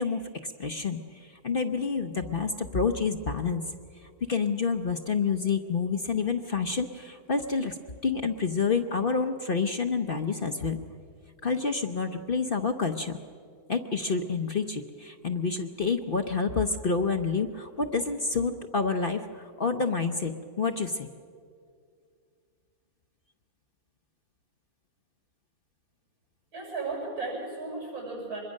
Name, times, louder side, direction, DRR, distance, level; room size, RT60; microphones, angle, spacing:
voice 1, 0.0-3.6 3.9-7.8 8.0-10.8 11.4-13.2 13.7-21.1, left 5 dB, 45° left, 6 dB, 0.8 m, -28 dB
voice 2, 26.5-28.4, right 3 dB, 80° right, -2 dB, 8.8 m, -35 dB
25.5 x 21.5 x 6.5 m, 2.2 s
omnidirectional pair, 1.6 m